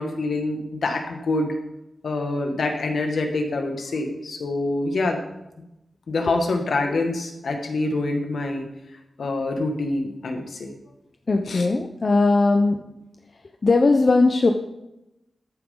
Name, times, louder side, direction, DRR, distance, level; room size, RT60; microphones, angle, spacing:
voice 1, 0.0-1.5 2.0-5.2 6.1-8.7 9.2-10.7 11.5-11.7, left 2 dB, 80° left, 3 dB, 1.8 m, -26 dB
voice 2, 11.3-12.8 13.6-14.5, left 3 dB, 45° left, 4 dB, 0.7 m, -19 dB
14.0 x 9.2 x 3.9 m, 0.90 s
wide cardioid pair, 135°, 0 cm